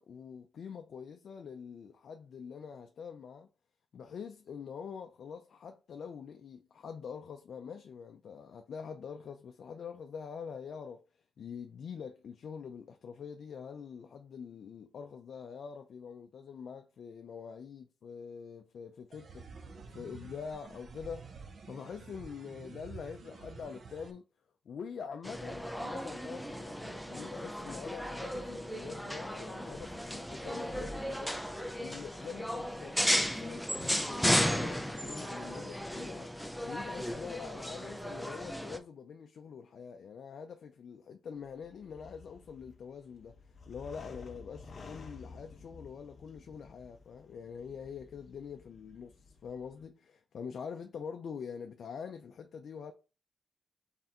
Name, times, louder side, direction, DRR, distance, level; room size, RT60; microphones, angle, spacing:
voice 1, 0.0-3.5 3.9-11.0 11.4-21.3 21.7-24.2 24.7-31.4 31.8-36.3 36.6-52.9, left 6 dB, 60° left, 0.4 m, -45 dB
sound 1, 19.1-24.1, right 4 dB, 45° right, 0.7 m, -49 dB
sound 2, 25.2-38.8, equal, ahead, 0.4 m, -35 dB
sound 3, 41.4-49.9, left 3 dB, 40° left, 0.8 m, -53 dB
4.3 x 3.3 x 3.7 m
wide cardioid pair, 145°, 0 cm